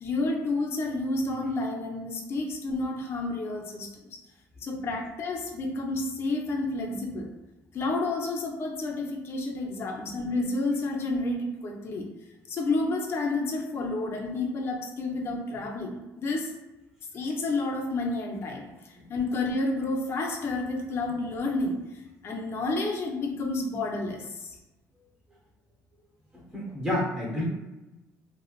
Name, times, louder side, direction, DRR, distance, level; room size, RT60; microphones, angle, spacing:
voice 1, 0.0-3.9 4.6-7.3 7.7-12.1 12.5-16.5 17.1-24.6, left 2 dB, 40° left, 1 dB, 0.5 m, -30 dB
voice 2, 26.3-27.4, left 1 dB, 10° right, -4 dB, 0.8 m, -30 dB
3.0 x 2.1 x 2.4 m, 1.0 s
cardioid pair, 150°, 6 cm